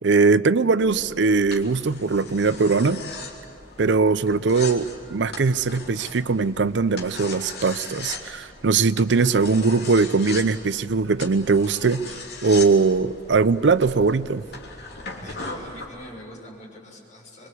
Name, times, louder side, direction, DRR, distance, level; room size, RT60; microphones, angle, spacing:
voice 1, 0.0-3.0 3.8-12.1 12.4-14.4, right 4 dB, 75° right, 16 dB, 0.6 m, -20 dB
sound 1, 0.8-15.9, left 3 dB, 55° left, 3.2 m, -39 dB
voice 2, 15.1-17.5, equal, 40° left, -2 dB, 6.7 m, -43 dB
25.0 x 23.5 x 8.3 m, 2.2 s
head